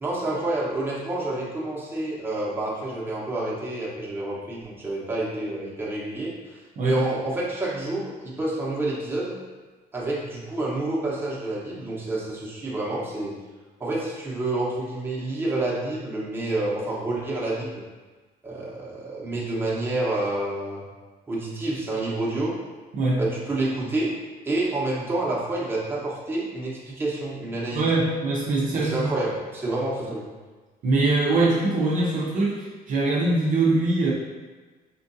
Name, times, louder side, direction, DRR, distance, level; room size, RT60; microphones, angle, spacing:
voice 1, 0.0-9.4 9.9-13.3 13.8-17.8 18.4-20.8 21.3-22.6 23.2-24.1 24.4-27.9 28.7-30.3, right 2 dB, 15° right, -6 dB, 0.9 m, -28 dB
voice 2, 22.9-23.2 27.7-29.1 30.8-34.1, right 2 dB, 50° right, -4 dB, 0.6 m, -23 dB
4.5 x 2.5 x 2.6 m, 1.3 s
cardioid pair, 110°, 17 cm